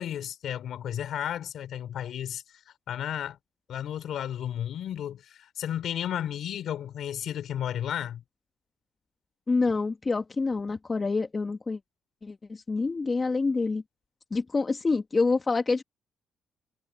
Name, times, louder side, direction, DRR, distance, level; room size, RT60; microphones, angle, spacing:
voice 1, 0.0-2.4 2.9-3.4 3.7-8.2, left 10 dB, 70° left, 3.6 m, -33 dB
voice 2, 9.5-11.8 12.2-13.8 14.3-15.8, left 3 dB, 30° left, 2.1 m, -27 dB
cardioid pair, 90°, 0 cm